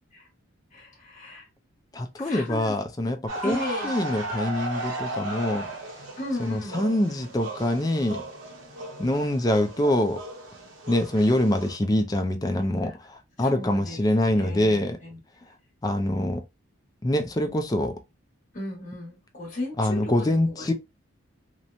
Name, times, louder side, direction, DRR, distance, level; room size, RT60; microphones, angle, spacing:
voice 1, 0.7-1.5 2.2-2.7 3.4-3.9 6.2-6.9 13.4-15.2 18.5-20.7, left 1 dB, 35° left, 1.3 m, -36 dB
voice 2, 1.9-5.7 6.4-8.2 9.0-10.2 10.9-15.0 15.8-16.4 17.0-17.9 19.8-20.7, left 1 dB, 20° left, 0.4 m, -25 dB
sound 1, 3.3-11.8, right 1 dB, 70° right, 0.8 m, -36 dB
2.9 x 2.1 x 2.5 m
head